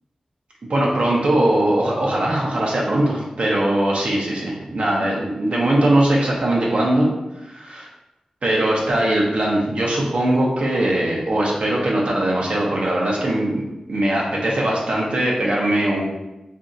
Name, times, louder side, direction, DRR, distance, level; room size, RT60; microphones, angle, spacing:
voice 1, 0.7-7.1 7.4-7.9 8.4-13.6 13.9-16.0, right 1 dB, 70° right, -3 dB, 0.7 m, -20 dB
2.6 x 2.4 x 3.8 m, 0.96 s
wide cardioid pair, 80°, 2 cm